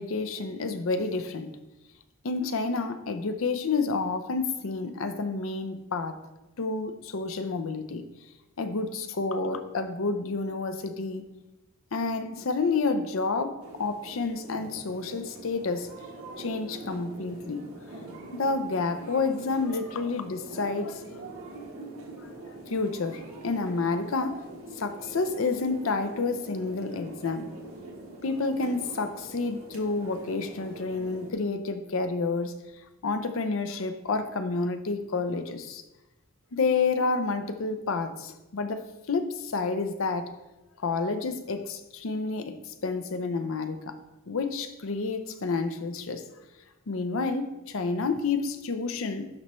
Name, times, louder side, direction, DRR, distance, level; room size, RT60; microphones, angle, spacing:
voice 1, 0.0-1.6 2.2-6.2 6.6-8.0 8.6-11.3 11.9-15.9 16.4-17.7 18.3-21.3 22.5-24.4 24.8-27.5 28.2-32.6 33.0-35.8 36.5-40.3 40.8-44.0 44.3-46.2 46.9-49.3, left 4 dB, 75° left, 9 dB, 0.6 m, -29 dB
sound 1, 13.6-31.3, right 2 dB, 90° right, 1.3 m, -44 dB
11.0 x 4.2 x 3.1 m, 1.0 s
head